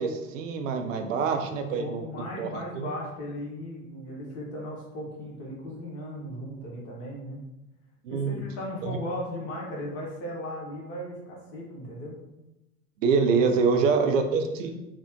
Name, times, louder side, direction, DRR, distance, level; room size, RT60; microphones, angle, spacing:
voice 1, 0.0-2.0 2.4-2.9 8.0-8.4 8.8-9.0 13.0-14.7, right 5 dB, 70° right, 5 dB, 0.5 m, -25 dB
voice 2, 1.5-7.4 8.1-12.2 13.7-13.8, left 1 dB, 40° left, -3 dB, 1.0 m, -37 dB
3.3 x 2.0 x 2.8 m, 0.94 s
figure-of-eight pair, 80°, 40 cm